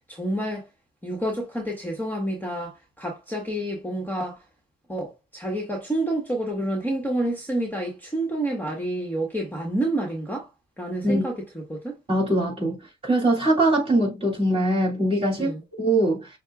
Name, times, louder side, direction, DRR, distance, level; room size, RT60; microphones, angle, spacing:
voice 1, 0.1-0.6 1.0-4.4 4.9-10.5 10.8-11.9 15.4-15.6, right 1 dB, 10° left, 1.4 m, -29 dB
voice 2, 12.1-12.8 13.0-15.5 15.8-16.3, right 1 dB, 30° right, 2.7 m, -22 dB
6.4 x 2.3 x 2.4 m
cardioid pair, 90°, 20 cm